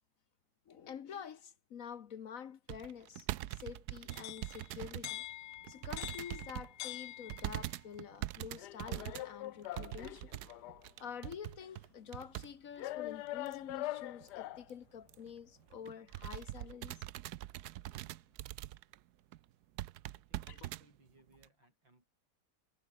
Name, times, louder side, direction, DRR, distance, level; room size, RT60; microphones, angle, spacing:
voice 1, 0.7-5.2 5.7-10.3 11.0-17.0 20.5-20.7, left 8 dB, 50° left, 1.1 m, -48 dB
sound 1, 2.7-5.2 5.5-6.7 7.3-12.5 12.8-12.9 13.5-13.8 14.2-14.3 14.5-14.7 15.1-15.3 15.7-19.0 19.3-19.4 19.8-20.8 21.4-21.5, right 14 dB, 80° right, 0.9 m, -43 dB
sound 2, 4.1-7.7 8.6-10.9 11.6-11.7 12.8-14.7, left 15 dB, 75° left, 0.9 m, -44 dB
voice 2, 20.1-22.0, right 2 dB, 60° right, 8.3 m, -68 dB
omnidirectional pair, 2.3 m